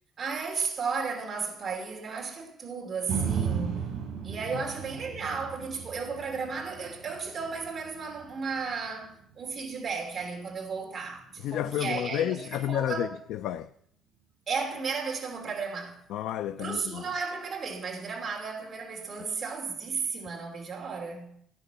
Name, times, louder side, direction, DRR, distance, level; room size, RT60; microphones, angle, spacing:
voice 1, 0.2-3.9 4.2-13.1 14.5-16.0 16.6-21.4, right 5 dB, 25° right, 3.0 m, -34 dB
sound 1, 3.1-11.2 11.7-11.8, right 7 dB, 65° right, 4.2 m, -36 dB
voice 2, 11.4-13.7 16.1-17.1, left 11 dB, 75° left, 0.5 m, -31 dB
16.5 x 10.0 x 7.0 m
cardioid pair, 180°, 0 cm